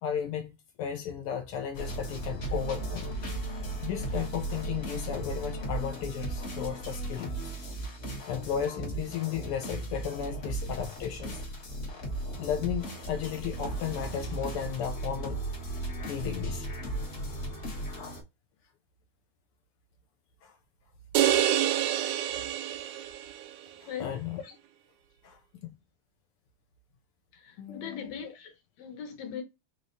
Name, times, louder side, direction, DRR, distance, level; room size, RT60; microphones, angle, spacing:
voice 1, 0.0-3.1 3.8-7.5 8.3-11.4 12.4-15.4 16.1-16.7 20.4-20.5 23.8-24.6 25.2-25.7 27.6-28.3, left 9 dB, 90° left, 1.2 m, -34 dB
sound 1, 1.7-18.2, right 2 dB, 50° left, 0.9 m, -36 dB
sound 2, 21.1-23.5, right 11 dB, 80° right, 1.9 m, -27 dB
voice 2, 23.9-24.2 27.3-29.4, left 7 dB, 65° left, 2.1 m, -40 dB
5.0 x 3.2 x 2.6 m
omnidirectional pair, 3.3 m